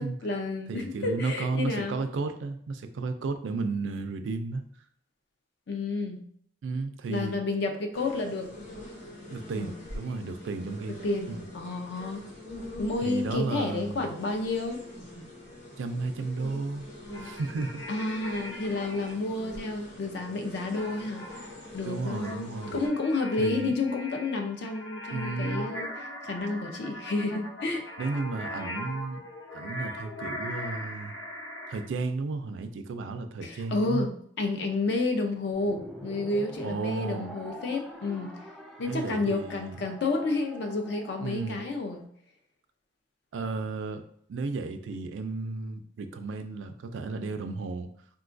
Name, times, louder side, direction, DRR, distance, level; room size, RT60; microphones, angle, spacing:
voice 1, 0.0-2.0 5.7-6.2 7.1-8.5 10.9-12.3 12.8-14.8 17.9-21.3 21.7-27.9 33.4-38.4 38.8-42.0, left 3 dB, 65° left, 5 dB, 0.5 m, -30 dB
voice 2, 0.7-4.6 6.6-7.4 9.3-11.0 11.3-11.4 13.0-14.0 15.8-16.9 17.2-17.8 21.9-22.8 23.4-23.7 25.1-25.7 28.0-29.2 29.5-31.1 31.7-34.1 36.6-37.3 38.9-39.8 41.2-41.6 43.3-44.0 44.3-47.9, right 3 dB, 80° right, 9 dB, 0.4 m, -33 dB
sound 1, 7.9-22.9, left 1 dB, 40° left, 0.9 m, -44 dB
sound 2, 17.1-19.1 20.8-31.8, left 1 dB, 85° left, 0.8 m, -40 dB
sound 3, 35.5-42.1, equal, ahead, 0.3 m, -45 dB
3.7 x 2.3 x 2.5 m, 0.63 s
head